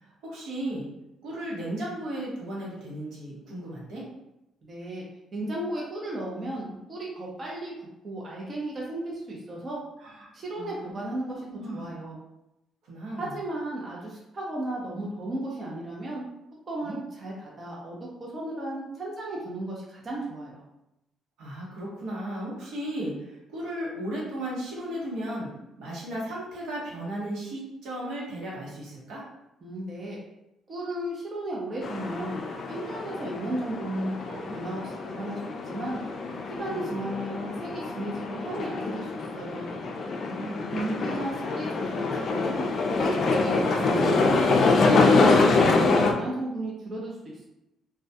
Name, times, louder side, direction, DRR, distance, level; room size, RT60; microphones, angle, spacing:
voice 1, 0.0-0.9 1.2-4.1 10.0-10.3 10.6-10.9 11.2-11.8 12.8-13.3 16.8-17.0 21.4-25.5 25.8-29.2 36.7-36.9 40.3-40.7, right 1 dB, 80° right, -6 dB, 0.9 m, -35 dB
voice 2, 4.6-5.1 5.3-9.8 10.3-11.5 11.7-12.2 13.2-16.2 16.7-20.6 29.6-30.2 30.7-32.4 32.7-36.0 36.5-39.7 40.7-42.7 43.0-45.3 45.7-47.5, right 1 dB, 40° right, -4 dB, 0.6 m, -34 dB
sound 1, 31.8-46.1, left 3 dB, 55° left, 0.3 m, -25 dB
2.2 x 2.2 x 2.6 m, 0.91 s
cardioid pair, 80°, 0 cm